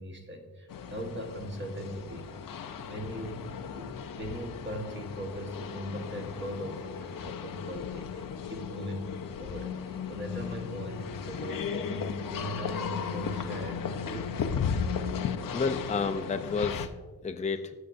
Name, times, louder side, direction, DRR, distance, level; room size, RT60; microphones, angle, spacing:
voice 1, 0.0-2.3 2.7-9.1 9.4-14.4, equal, 35° right, 2 dB, 1.4 m, -39 dB
sound 1, 0.7-16.9, left 7 dB, 70° left, 0.7 m, -36 dB
voice 2, 15.5-17.7, left 4 dB, 20° left, 7 dB, 0.5 m, -31 dB
15.0 x 6.8 x 2.6 m, 1.3 s
wide cardioid pair, 125°, 34 cm